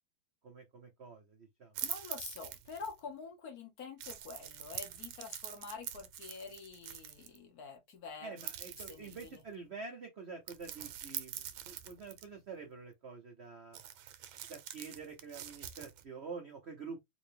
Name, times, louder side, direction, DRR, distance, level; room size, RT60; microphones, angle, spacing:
voice 1, 0.4-1.7 8.2-13.8 14.5-17.0, right 4 dB, 70° right, 0.6 m, -47 dB
sound 1, 1.7-3.0 4.0-7.4 8.4-9.4 10.5-12.2 13.7-16.0, right 11 dB, 85° right, 1.5 m, -44 dB
voice 2, 1.8-8.4 8.8-9.3, left 5 dB, 55° left, 1.1 m, -47 dB
3.8 x 2.6 x 3.2 m
omnidirectional pair, 2.2 m